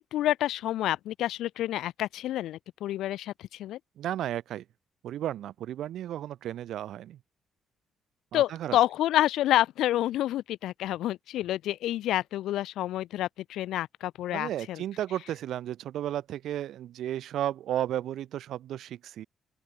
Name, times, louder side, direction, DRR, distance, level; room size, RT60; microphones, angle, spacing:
voice 1, 0.0-3.3 3.6-3.8 8.3-14.8, left 13 dB, 85° left, 6.9 m, -28 dB
voice 2, 4.0-4.6 5.0-7.2 8.3-8.8 14.3-19.3, right 12 dB, 75° right, 5.3 m, -33 dB
open air
cardioid pair, 90°, 0 cm